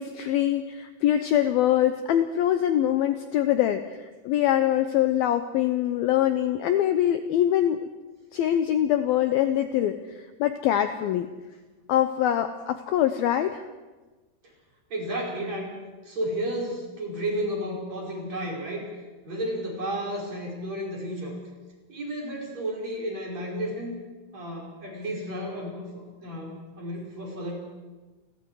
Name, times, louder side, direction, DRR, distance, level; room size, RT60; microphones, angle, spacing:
voice 1, 0.0-7.9 8.3-11.3 11.9-13.6, left 11 dB, 85° left, 8 dB, 2.1 m, -24 dB
voice 2, 14.9-15.7 16.0-18.9 19.2-21.3 21.9-23.9 24.3-27.6, right 1 dB, 35° right, -2 dB, 6.1 m, -32 dB
29.5 x 22.5 x 4.8 m, 1.2 s
omnidirectional pair, 5.4 m